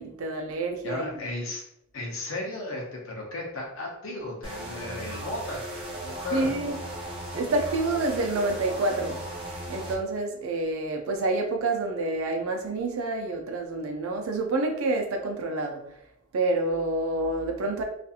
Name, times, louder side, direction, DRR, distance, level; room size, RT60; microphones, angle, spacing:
voice 1, 0.0-1.2 6.3-6.8 7.3-15.8 16.3-17.8, right 2 dB, 75° right, 3 dB, 0.5 m, -28 dB
voice 2, 0.8-1.6 1.9-5.7 6.0-6.5, left 2 dB, 65° left, -1 dB, 0.6 m, -34 dB
sound 1, 4.4-10.0, right 1 dB, 25° right, 0.5 m, -37 dB
2.7 x 2.4 x 2.4 m, 0.78 s
head